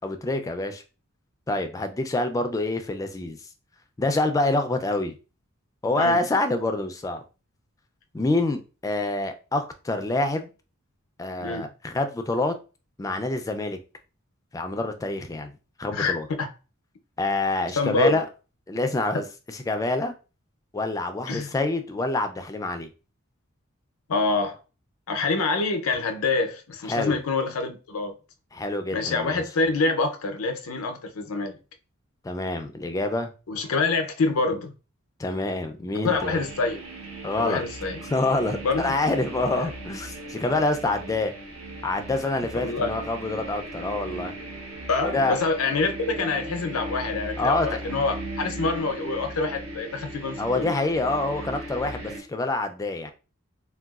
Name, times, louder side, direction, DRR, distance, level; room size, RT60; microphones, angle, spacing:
voice 1, 0.0-0.8 1.5-3.4 4.0-5.2 5.8-7.2 8.1-10.5 11.2-12.5 13.0-13.8 14.5-15.5 15.8-16.3 17.2-18.2 18.7-20.1 20.7-22.9 26.9-27.2 28.5-29.4 32.2-33.3 35.2-36.4 37.2-37.6 38.1-41.3 41.8-44.3 45.1-45.4 47.4-47.7 50.4-53.1, left 2 dB, 15° left, 0.3 m, -26 dB
voice 2, 15.9-16.5 17.8-18.2 21.3-21.5 24.1-24.6 25.1-28.1 28.9-31.6 33.5-34.7 36.0-36.8 37.4-38.0 38.6-38.9 42.5-42.9 44.9-50.8, left 3 dB, 85° left, 0.5 m, -26 dB
sound 1, 36.1-52.2, right 1 dB, 65° right, 0.8 m, -37 dB
3.8 x 2.3 x 2.3 m
head